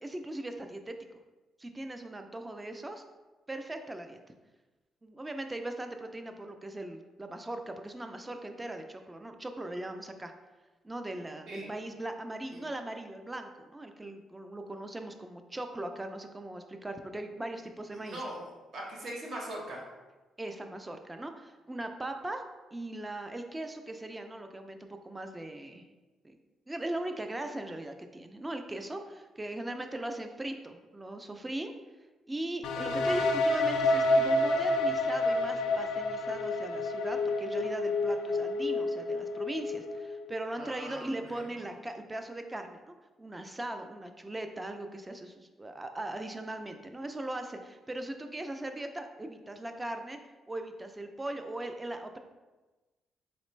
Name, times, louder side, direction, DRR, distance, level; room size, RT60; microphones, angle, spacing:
voice 1, 0.0-0.9 1.6-3.0 3.5-4.2 5.0-10.3 10.8-18.2 20.4-22.4 22.7-25.8 26.2-26.4 26.7-31.7 32.3-50.2 50.5-52.2, right 1 dB, 15° right, 6 dB, 0.4 m, -39 dB
voice 2, 17.9-19.8 40.5-41.4, right 1 dB, 60° right, -3 dB, 1.2 m, -41 dB
sound 1, 32.6-40.4, left 2 dB, 90° left, 0.4 m, -29 dB
4.2 x 3.2 x 3.1 m, 1.2 s
cardioid pair, 90°, 0 cm